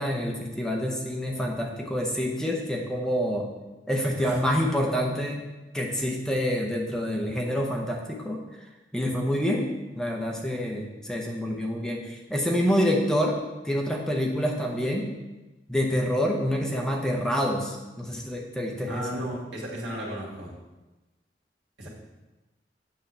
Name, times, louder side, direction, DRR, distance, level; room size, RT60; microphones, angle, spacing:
voice 1, 0.0-3.5 3.9-5.4 5.7-8.4 8.9-9.7 9.9-13.4 13.6-15.1 15.7-19.2, equal, 5° left, 0 dB, 0.8 m, -27 dB
voice 2, 4.1-4.4 18.9-20.5 21.8-21.9, equal, 80° right, -4 dB, 2.3 m, -35 dB
8.2 x 7.0 x 3.3 m, 1.1 s
head